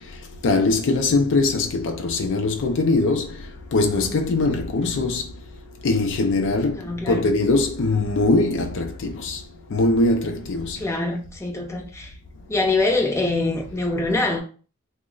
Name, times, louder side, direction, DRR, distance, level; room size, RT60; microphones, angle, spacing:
voice 1, 0.4-3.3 3.7-5.2 5.8-6.8 7.1-9.4 9.7-10.8, left 2 dB, 60° left, 0.4 m, -21 dB
voice 2, 6.7-7.3 10.8-12.1 12.5-14.4, left 2 dB, 15° left, 0.6 m, -24 dB
3.1 x 2.0 x 3.7 m
head